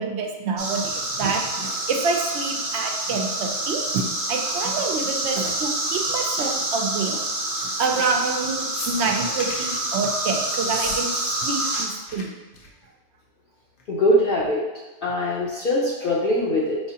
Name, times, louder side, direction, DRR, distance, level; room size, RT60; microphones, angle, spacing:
voice 1, 0.0-7.2 7.8-11.1 11.4-12.3, right 4 dB, 75° right, 3 dB, 0.8 m, -27 dB
sound 1, 0.6-11.9, right 2 dB, 40° right, 0.8 m, -27 dB
sound 2, 8.7-9.7 10.6-11.0 11.3-11.8 12.1-12.2 12.5-12.8 13.8-13.9, left 2 dB, 90° left, 1.0 m, -36 dB
voice 2, 13.9-14.6 15.0-16.8, left 1 dB, 60° left, -5 dB, 0.7 m, -22 dB
4.7 x 3.0 x 2.8 m, 1.1 s
omnidirectional pair, 1.2 m